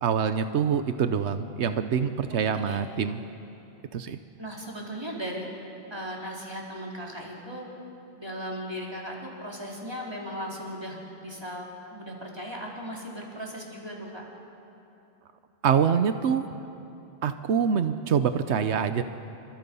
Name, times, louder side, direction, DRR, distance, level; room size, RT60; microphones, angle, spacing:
voice 1, 0.0-3.2 3.9-4.2 15.6-16.5 17.2-19.0, right 7 dB, 90° right, 10 dB, 1.1 m, -25 dB
voice 2, 4.4-5.4 5.9-7.7 8.2-14.2, equal, 25° right, -3 dB, 4.3 m, -37 dB
30.0 x 25.5 x 5.5 m, 2.8 s
omnidirectional pair, 1.1 m